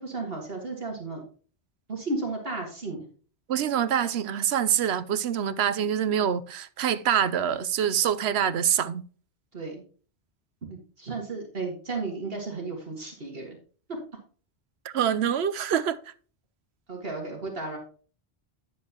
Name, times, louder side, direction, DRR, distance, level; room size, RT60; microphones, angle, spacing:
voice 1, 0.0-1.2 1.9-3.0 9.5-9.8 10.6-13.6 13.9-14.0 16.9-17.8, right 3 dB, 60° right, 2.0 m, -34 dB
voice 2, 3.5-9.0 14.8-16.0, right 9 dB, 75° right, 0.9 m, -25 dB
10.5 x 7.4 x 2.9 m
omnidirectional pair, 1.1 m